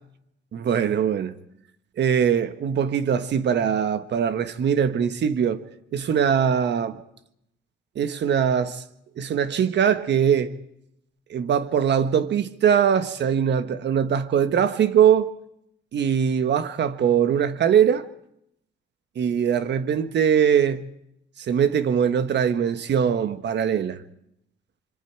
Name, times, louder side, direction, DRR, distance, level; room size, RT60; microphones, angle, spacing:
voice 1, 0.5-1.3 2.0-5.6 5.9-7.0 7.9-8.8 9.2-10.5 11.3-15.3 15.9-18.0 19.1-20.9 21.4-24.0, right 8 dB, 60° right, 1.4 m, -21 dB
26.0 x 24.5 x 4.6 m
cardioid pair, 90°, 20 cm